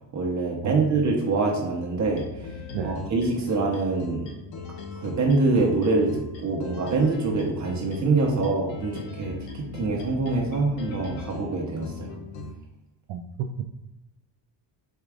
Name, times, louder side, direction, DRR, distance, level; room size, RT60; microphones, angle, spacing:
voice 1, 0.1-2.5 2.8-4.3 4.9-12.1, right 3 dB, 35° right, -1 dB, 0.8 m, -25 dB
sound 1, 2.0-12.5, left 4 dB, 70° left, 0.8 m, -39 dB
voice 2, 13.1-13.6, right 8 dB, 70° right, 5 dB, 0.5 m, -31 dB
4.5 x 2.4 x 4.8 m, 0.99 s
cardioid pair, 155°, 47 cm